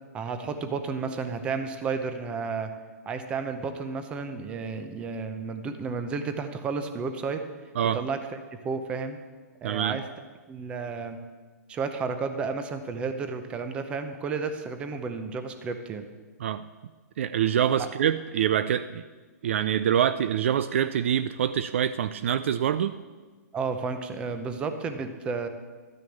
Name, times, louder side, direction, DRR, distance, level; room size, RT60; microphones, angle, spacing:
voice 1, 0.1-2.7 3.1-7.4 7.9-8.2 8.6-9.2 9.6-10.0 10.5-11.2 11.7-16.1 17.8-17.9 23.5-25.5, right 5 dB, 10° right, 8 dB, 0.7 m, -32 dB
voice 2, 9.6-10.0 16.4-16.6 17.2-19.0 19.4-22.9, right 9 dB, 45° right, 13 dB, 0.4 m, -25 dB
12.5 x 6.4 x 8.6 m, 1.4 s
hypercardioid pair, 165°, 9 cm